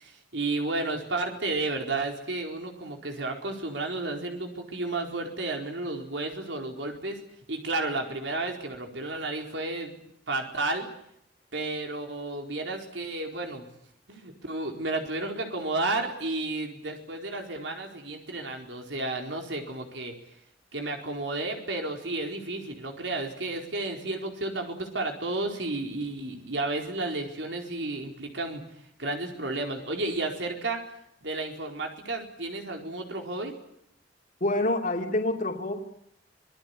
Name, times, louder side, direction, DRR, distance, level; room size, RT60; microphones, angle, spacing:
voice 1, 0.0-7.2 7.5-10.0 10.3-10.9 11.5-13.7 14.1-20.1 20.7-28.6 29.0-30.8 31.2-33.5, right 2 dB, 85° right, 2 dB, 4.4 m, -32 dB
voice 2, 34.4-35.8, left 1 dB, 45° left, 2 dB, 2.8 m, -27 dB
26.0 x 20.0 x 9.7 m, 0.76 s
head